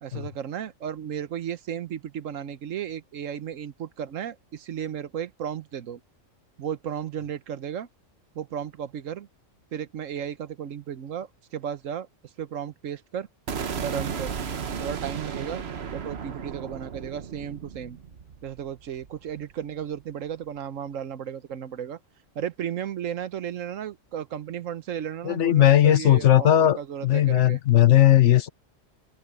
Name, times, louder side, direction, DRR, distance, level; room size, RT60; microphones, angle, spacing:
voice 1, 0.0-6.0 6.6-7.9 8.3-9.3 9.7-12.1 12.4-13.3 13.8-14.3 14.8-15.6 15.9-18.0 18.4-22.0 22.3-27.6, right 9 dB, 80° right, 1.3 m, -34 dB
sound 1, 13.5-19.5, right 6 dB, 55° right, 1.3 m, -34 dB
voice 2, 25.2-26.8 27.0-28.5, left 12 dB, 65° left, 1.1 m, -18 dB
omnidirectional pair, 1.3 m